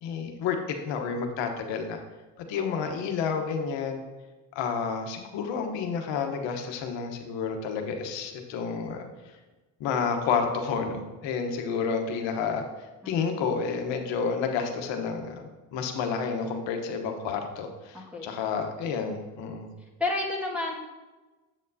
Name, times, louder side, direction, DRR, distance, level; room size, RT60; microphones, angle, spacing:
voice 1, 0.0-0.6 0.8-2.0 2.5-4.0 4.5-9.1 9.8-12.6 13.1-15.4 15.7-19.7, left 6 dB, 75° left, 5 dB, 1.1 m, -30 dB
voice 2, 17.9-18.4 20.0-20.7, left 2 dB, 5° right, -2 dB, 1.9 m, -30 dB
7.8 x 7.4 x 2.7 m, 1.2 s
supercardioid pair, 70°, 44 cm